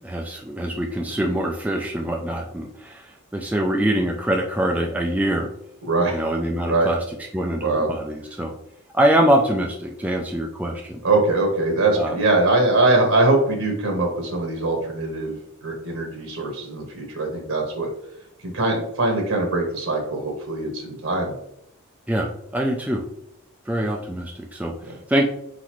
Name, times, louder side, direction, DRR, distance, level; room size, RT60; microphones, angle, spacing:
voice 1, 0.0-5.5 6.1-7.0 7.3-8.5 8.9-11.0 12.0-12.2 22.1-23.0 23.7-25.3, right 1 dB, 5° right, 1 dB, 0.3 m, -24 dB
voice 2, 5.9-6.2 6.7-6.9 7.6-7.9 11.0-15.4 15.6-17.9 18.4-21.4 24.9-25.0, right 2 dB, 85° right, 2 dB, 1.2 m, -22 dB
4.2 x 4.0 x 3.0 m, 0.76 s
head